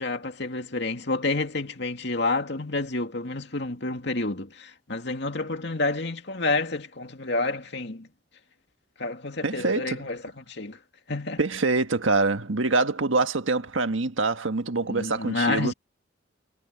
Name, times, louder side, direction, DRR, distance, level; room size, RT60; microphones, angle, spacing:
voice 1, 0.0-8.1 9.0-10.8 11.1-11.4 14.9-15.7, left 3 dB, 60° left, 2.5 m, -29 dB
voice 2, 9.4-10.0 11.4-15.7, right 3 dB, 90° right, 1.6 m, -25 dB
head